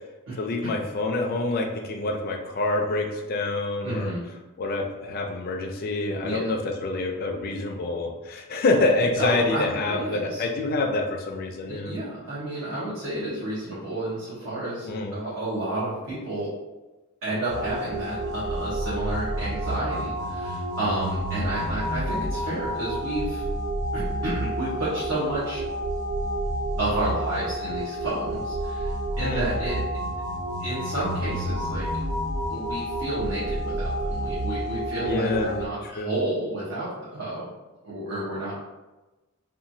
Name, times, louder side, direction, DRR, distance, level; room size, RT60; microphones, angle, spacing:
voice 1, 0.4-4.1 4.6-12.0 14.9-15.1 29.2-29.5 35.0-35.6 35.8-36.1, left 2 dB, 45° left, 2 dB, 0.4 m, -26 dB
voice 2, 3.8-4.2 6.2-6.4 9.2-10.4 11.7-16.5 17.2-23.4 23.9-25.6 26.8-29.8 30.6-31.9 32.5-37.5 37.8-38.5, right 1 dB, 65° right, -10 dB, 0.8 m, -31 dB
sound 1, 17.5-35.7, right 1 dB, 85° right, 0.4 m, -29 dB
2.9 x 2.3 x 2.6 m, 1.1 s
head